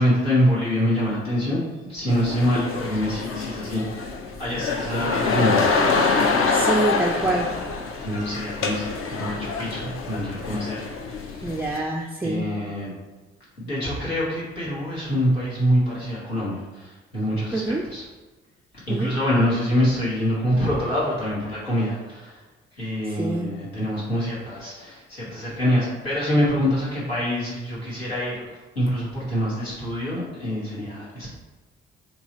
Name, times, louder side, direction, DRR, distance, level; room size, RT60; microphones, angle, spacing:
voice 1, 0.0-6.0 8.0-11.5 12.2-12.9 13.6-18.0 18.9-22.4 22.8-28.5 28.7-31.3, equal, 85° left, -8 dB, 1.2 m, -25 dB
sound 1, 2.1-11.8, left 4 dB, 45° left, 0.6 m, -25 dB
voice 2, 6.5-7.5 11.4-12.5 17.5-17.8 18.9-19.1 23.1-23.5, right 2 dB, 5° right, -1 dB, 0.4 m, -26 dB
3.9 x 3.0 x 4.0 m, 1.2 s
figure-of-eight pair, 40°, 30 cm